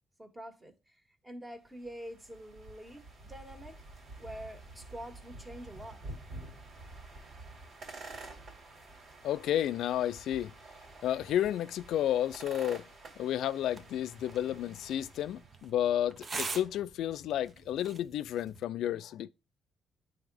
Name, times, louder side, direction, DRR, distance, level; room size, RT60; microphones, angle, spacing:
voice 1, 0.2-0.7 1.2-3.8 4.2-6.0, right 1 dB, 15° right, 1.7 m, -46 dB
sound 1, 1.7-15.7, right 2 dB, 65° right, 2.6 m, -49 dB
voice 2, 9.2-10.5 11.0-12.8 13.2-19.3, left 11 dB, 80° left, 0.4 m, -31 dB
sound 2, 13.6-18.6, right 4 dB, 40° right, 0.7 m, -44 dB
9.8 x 3.5 x 3.4 m
cardioid pair, 90°, 0 cm